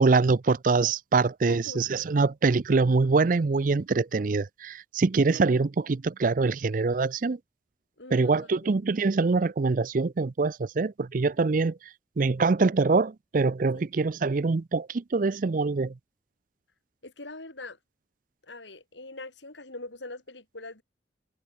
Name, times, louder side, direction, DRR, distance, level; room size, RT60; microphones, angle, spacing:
voice 1, 0.0-7.4 8.1-11.8 12.2-15.9, right 4 dB, 45° right, 0.5 m, -24 dB
voice 2, 1.5-1.8 8.0-8.5 13.7-13.8 17.0-17.8 18.4-20.8, left 2 dB, 80° left, 5.1 m, -42 dB
head